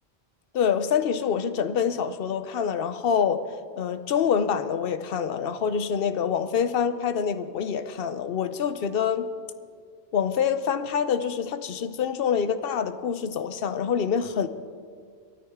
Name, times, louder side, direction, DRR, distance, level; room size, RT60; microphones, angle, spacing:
voice 1, 0.5-3.4 3.8-9.3 10.1-14.5, left 7 dB, 65° left, 0.9 m, -26 dB
22.5 x 13.5 x 3.6 m
omnidirectional pair, 1.0 m